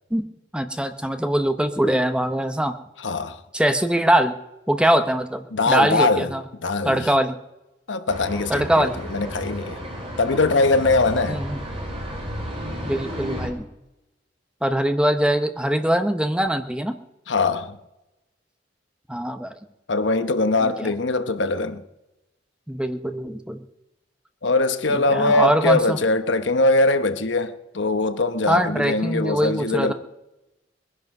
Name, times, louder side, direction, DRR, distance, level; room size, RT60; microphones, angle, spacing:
voice 1, 0.5-2.7 3.5-4.4 4.7-6.4 6.8-7.4 8.5-9.0 11.3-11.6 12.8-13.6 14.6-17.0 19.1-19.5 20.6-20.9 22.7-23.6 24.9-26.0 28.5-29.9, right 1 dB, 5° right, 0.8 m, -22 dB
voice 2, 3.0-3.4 5.5-6.3 6.6-7.1 7.9-9.8 10.2-11.4 17.3-17.8 19.9-21.8 24.4-29.9, left 2 dB, 80° left, 1.0 m, -22 dB
sound 1, 8.1-13.5, equal, 30° right, 3.3 m, -33 dB
21.0 x 11.0 x 5.3 m
head